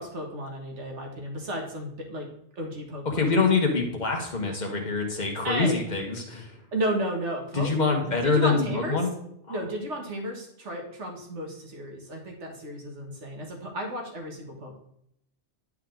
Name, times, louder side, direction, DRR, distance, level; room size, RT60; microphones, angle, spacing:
voice 1, 0.0-2.3 2.5-3.5 5.4-5.8 6.7-7.7 8.0-9.0 9.5-14.8, right 1 dB, 60° right, 2 dB, 1.8 m, -33 dB
voice 2, 3.0-6.6 7.5-9.1, left 4 dB, 35° left, 2 dB, 1.4 m, -25 dB
10.0 x 4.6 x 3.8 m, 0.73 s
omnidirectional pair, 1.4 m